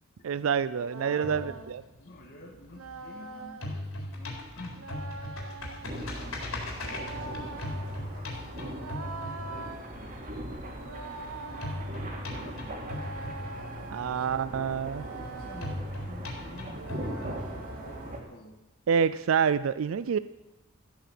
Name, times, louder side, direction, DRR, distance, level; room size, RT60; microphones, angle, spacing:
voice 1, 0.2-1.5 13.9-15.0 18.9-20.2, right 7 dB, 70° right, 15 dB, 0.4 m, -27 dB
sound 1, 0.7-1.8 2.7-3.7 4.7-6.0 6.7-8.0 8.7-9.8 10.7-11.9 12.7-14.1 14.7-15.8 16.7-18.1, right 3 dB, 90° right, 1.1 m, -43 dB
voice 2, 1.0-1.6 2.0-4.9 5.8-6.6 7.6-9.8 10.6-12.8 13.9-18.6, left 1 dB, 50° left, -2 dB, 1.9 m, -50 dB
sound 2, 1.2-3.2 3.5-10.0 11.6-14.0 15.6-18.0, left 1 dB, 80° left, 3.9 m, -38 dB
sound 3, 5.8-18.2, right 1 dB, 45° right, 2.7 m, -40 dB
14.0 x 9.2 x 7.5 m, 1.0 s
head